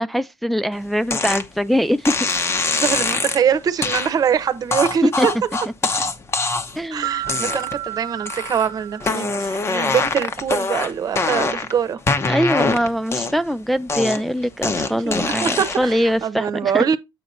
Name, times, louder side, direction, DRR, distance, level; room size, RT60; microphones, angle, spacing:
voice 1, 0.0-2.1 5.0-5.3 6.8-7.2 12.3-16.8, equal, ahead, 0.3 m, -22 dB
sound 1, 1.1-1.5 2.0-3.4 3.8-4.1 4.7-6.8 7.2-7.9 8.3-8.7 9.0-11.7 12.1-13.5 13.9-15.9, left 3 dB, 35° left, 1.0 m, -23 dB
voice 2, 2.7-5.3 6.9-12.0 14.2-14.3 14.9-17.0, right 7 dB, 55° right, 0.9 m, -23 dB
sound 2, 7.0-9.7, right 14 dB, 90° right, 0.8 m, -31 dB
8.2 x 4.2 x 4.1 m
cardioid pair, 100°, 8 cm